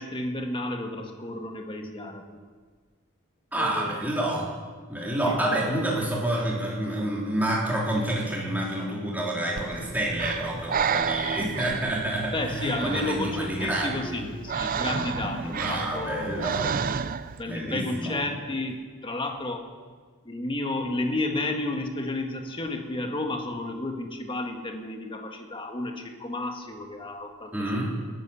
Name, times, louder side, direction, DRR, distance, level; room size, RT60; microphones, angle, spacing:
voice 1, 0.0-2.4 3.6-4.1 5.2-5.4 12.3-16.5 17.4-19.7 20.2-27.9, left 2 dB, 25° left, 3 dB, 1.7 m, -32 dB
voice 2, 3.5-4.5 4.9-14.3 14.8-16.8 17.5-18.2 27.5-27.9, right 1 dB, 10° right, -4 dB, 3.7 m, -28 dB
Breathing, 9.6-17.4, right 6 dB, 40° right, 0.5 m, -32 dB
19.0 x 10.5 x 7.1 m, 1.5 s
head